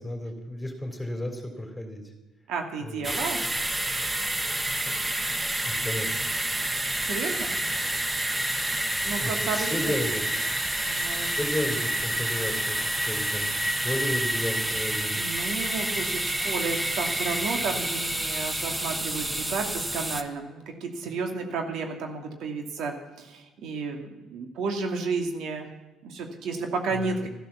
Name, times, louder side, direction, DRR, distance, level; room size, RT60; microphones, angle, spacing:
voice 1, 0.0-2.0 2.8-3.1 4.8-6.3 9.2-10.2 11.1-12.8 13.0-15.2 27.0-27.3, left 1 dB, 10° left, 4 dB, 3.6 m, -33 dB
voice 2, 2.5-3.4 7.0-7.5 9.0-9.9 10.8-11.3 15.2-25.7 26.0-27.3, right 4 dB, 70° right, 4 dB, 2.3 m, -32 dB
sound 1, 3.0-20.2, right 1 dB, 15° right, 1.3 m, -28 dB
13.0 x 12.0 x 7.1 m, 1.1 s
supercardioid pair, 85°, 0 cm